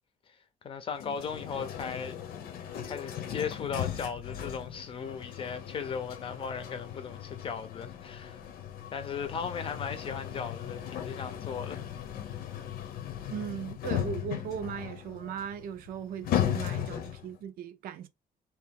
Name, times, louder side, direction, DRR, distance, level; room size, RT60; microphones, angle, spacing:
voice 1, 0.6-2.2 2.8-8.4 8.9-11.8, left 6 dB, 35° left, 0.6 m, -37 dB
sound 1, 0.9-17.4, left 10 dB, 80° left, 0.8 m, -37 dB
voice 2, 13.3-18.1, right 8 dB, 75° right, 0.5 m, -38 dB
3.0 x 2.9 x 3.5 m
cardioid pair, 165°, 15 cm